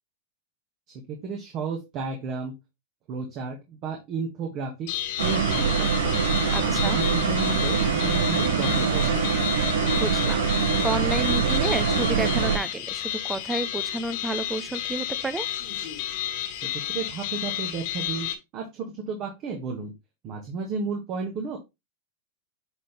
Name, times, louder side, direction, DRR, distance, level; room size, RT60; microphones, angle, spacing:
voice 1, 0.9-2.5 3.1-4.9 5.2-6.3 6.6-9.4 16.5-16.6 16.9-18.3 18.5-19.9 20.2-21.6, right 4 dB, 45° right, 1.9 m, -33 dB
sound 1, 4.9-18.3, left 12 dB, 60° left, 1.8 m, -32 dB
sound 2, 5.2-12.6, right 6 dB, 85° right, 1.5 m, -24 dB
voice 2, 6.5-7.0 9.9-15.5, right 3 dB, 15° right, 0.7 m, -31 dB
9.2 x 4.1 x 3.4 m
hypercardioid pair, 120°, 0 cm